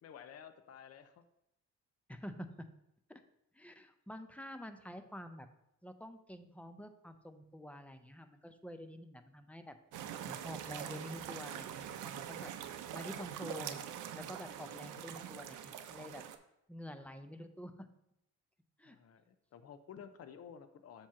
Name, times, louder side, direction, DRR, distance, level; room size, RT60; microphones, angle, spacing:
voice 1, 0.0-1.2 18.8-21.1, left 8 dB, 55° left, 9 dB, 0.6 m, -53 dB
voice 2, 2.1-2.7 3.1-3.2 3.5-5.5 5.8-9.8 10.2-12.5 12.9-13.8 14.1-16.2 16.7-17.9 18.8-19.0, equal, 5° left, 8 dB, 0.5 m, -48 dB
sound 1, 9.9-16.4, right 10 dB, 85° right, 0.6 m, -44 dB
7.2 x 3.0 x 5.6 m, 0.81 s
cardioid pair, 90°, 30 cm